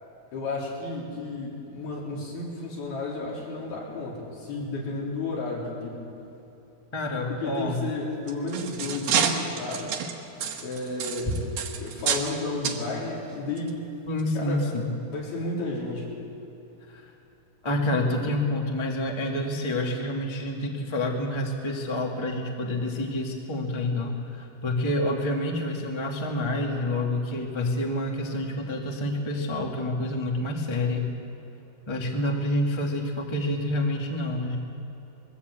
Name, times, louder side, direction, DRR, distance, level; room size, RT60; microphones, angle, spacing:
voice 1, 0.3-6.0 7.4-10.0 10.6-11.4 11.8-13.8 14.4-14.6 15.1-16.2, left 3 dB, 75° left, -4 dB, 5.6 m, -32 dB
voice 2, 6.9-7.8 14.1-14.9 16.9-17.0 17.6-31.1 31.9-34.6, left 1 dB, 20° left, 0 dB, 0.8 m, -28 dB
sound 1, 8.1-12.4 12.6-12.8 13.6-13.7 14.2-14.3, right 7 dB, 70° right, 3.0 m, -29 dB
22.0 x 15.5 x 8.3 m, 3.0 s
omnidirectional pair, 4.5 m